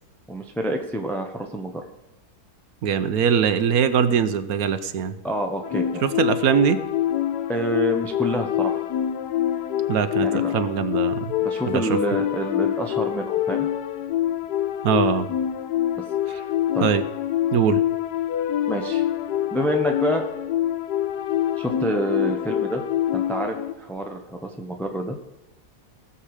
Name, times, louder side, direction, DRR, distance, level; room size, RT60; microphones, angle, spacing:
voice 1, 0.3-1.8 5.2-6.0 7.5-8.8 10.2-10.5 11.4-13.7 16.3-16.9 18.7-19.0 19.5-20.2 21.6-22.8 23.1-25.2, equal, ahead, 3 dB, 0.7 m, -27 dB
voice 2, 2.8-5.2 6.0-6.8 9.9-11.3 11.7-12.0 14.8-15.3 16.8-17.0 17.5-17.8, right 7 dB, 70° right, 10 dB, 1.2 m, -22 dB
sound 1, 5.6-23.7, left 11 dB, 90° left, 1.3 m, -25 dB
18.0 x 6.8 x 4.9 m, 1.0 s
omnidirectional pair, 1.7 m